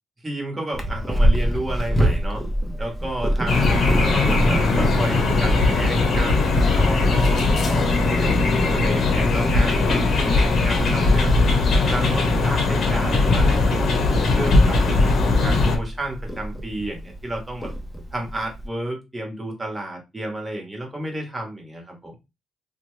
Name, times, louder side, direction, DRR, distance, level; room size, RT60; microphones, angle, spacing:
voice 1, 0.2-2.5 2.8-11.4 11.9-17.7 18.1-22.2, right 1 dB, 15° right, 1 dB, 1.2 m, -32 dB
Purr, 0.7-18.7, equal, 5° left, 0.8 m, -27 dB
sound 1, 3.5-15.8, left 3 dB, 55° left, 0.9 m, -19 dB
2.8 x 2.2 x 3.1 m, 0.24 s
cardioid pair, 90°, 0 cm